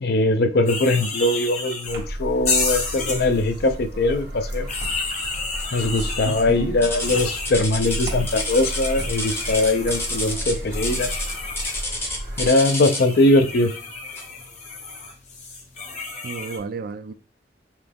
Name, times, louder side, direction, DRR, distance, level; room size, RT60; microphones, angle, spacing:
voice 1, 0.0-4.7 5.7-11.1 12.4-13.7, left 2 dB, 60° left, 0.5 m, -21 dB
sound 1, 0.7-2.0 2.4-3.6 4.4-6.4 7.0-11.8 12.3-16.6, left 4 dB, 40° left, 0.9 m, -31 dB
sound 2, 1.9-12.5, right 1 dB, 90° right, 1.6 m, -33 dB
voice 2, 6.2-6.7 16.2-17.1, right 4 dB, 55° right, 0.4 m, -31 dB
sound 3, 6.8-13.2 14.1-14.4 15.0-15.1 15.7-15.8, left 1 dB, 15° left, 0.7 m, -29 dB
5.6 x 2.3 x 3.4 m
head